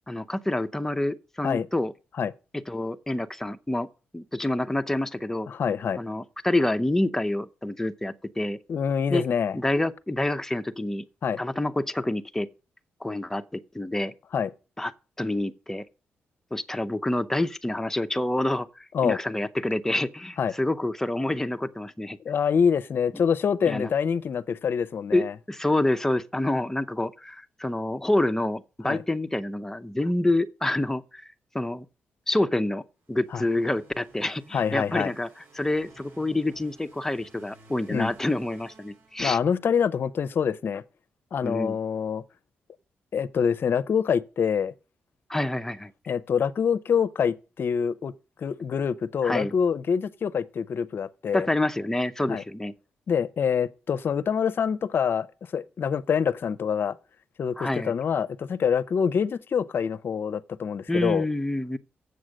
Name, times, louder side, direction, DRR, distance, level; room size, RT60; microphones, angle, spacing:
voice 1, 0.1-1.9 2.7-3.9 4.1-5.5 6.0-8.6 9.1-9.2 9.5-11.0 11.4-12.5 13.0-14.1 14.8-14.9 15.2-15.8 16.5-22.2 23.6-23.9 25.1-31.2 31.5-31.8 32.3-32.8 33.1-35.3 35.5-39.4 41.4-41.8 45.3-45.9 49.2-49.5 51.3-52.7 57.6-57.9 60.9-61.8, left 1 dB, 10° left, 0.7 m, -27 dB
voice 2, 5.5-6.0 8.7-9.6 11.2-11.4 14.3-14.5 18.9-19.2 20.4-20.5 22.2-25.3 28.8-29.0 33.3-33.4 34.5-35.1 37.9-38.1 39.2-40.8 41.3-42.2 43.1-44.7 46.1-48.1 48.4-51.5 52.3-52.4 53.1-55.3 55.5-57.0 57.4-61.3, left 7 dB, 60° left, 0.6 m, -25 dB
sound 1, 33.1-39.7, right 2 dB, 65° right, 2.6 m, -55 dB
8.0 x 6.4 x 6.4 m
cardioid pair, 70°, 4 cm